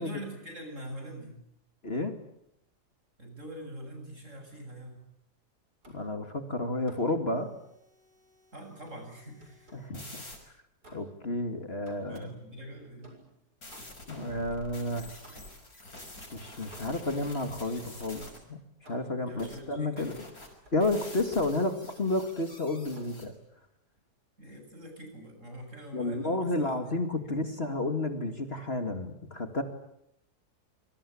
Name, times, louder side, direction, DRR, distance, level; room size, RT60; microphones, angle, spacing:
voice 1, 0.0-1.4 3.2-5.0 8.5-9.7 12.0-13.1 19.3-20.1 24.4-27.3, right 1 dB, 50° right, 5 dB, 8.2 m, -44 dB
sound 1, 5.8-6.2 6.9-7.2 8.9-10.0 10.8-11.3 11.9-12.3 13.0-14.2 15.2-15.7 16.7-17.2 18.2-19.2 20.6-20.8 21.2-21.8 22.9-23.3, right 1 dB, 75° right, 7.6 m, -56 dB
voice 2, 5.9-7.5 9.7-10.2 10.9-12.3 14.1-15.2 16.3-18.6 18.8-20.2 20.7-23.3 25.9-29.6, left 2 dB, 40° left, 6 dB, 2.5 m, -31 dB
sound 2, 8.7-10.4 12.1-12.2 13.6-18.4 19.4-19.6 20.0-23.3, left 2 dB, 65° left, 6.4 m, -48 dB
26.5 x 24.5 x 8.7 m, 0.77 s
omnidirectional pair, 1.7 m